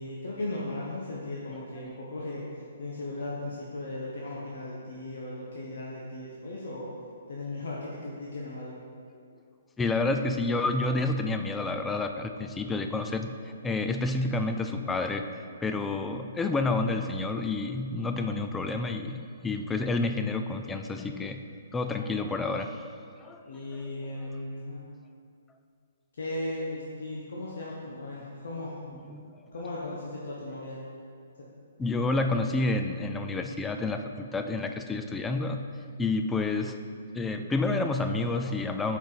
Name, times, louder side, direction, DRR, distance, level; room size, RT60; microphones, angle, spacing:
voice 1, 0.0-6.9 7.3-8.8 23.4-24.8 26.1-28.8 29.5-30.8 31.4-31.5, left 2 dB, 75° left, -5 dB, 1.1 m, -37 dB
voice 2, 9.8-15.3 15.6-21.4 21.7-22.8 23.2-23.4 29.1-29.4 31.8-35.7 36.0-36.8 37.1-39.0, left 3 dB, 10° left, 6 dB, 0.3 m, -29 dB
7.0 x 4.8 x 4.0 m, 2.3 s
hypercardioid pair, 155°, 0 cm